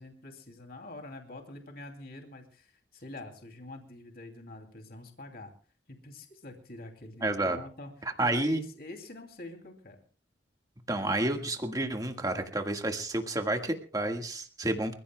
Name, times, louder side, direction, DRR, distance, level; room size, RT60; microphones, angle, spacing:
voice 1, 0.0-5.5 5.9-10.0, left 2 dB, 55° left, 3 dB, 2.8 m, -45 dB
voice 2, 7.2-7.6 8.2-8.6 10.9-14.9, right 1 dB, 20° right, 5 dB, 1.7 m, -30 dB
29.5 x 15.5 x 2.3 m, 0.42 s
head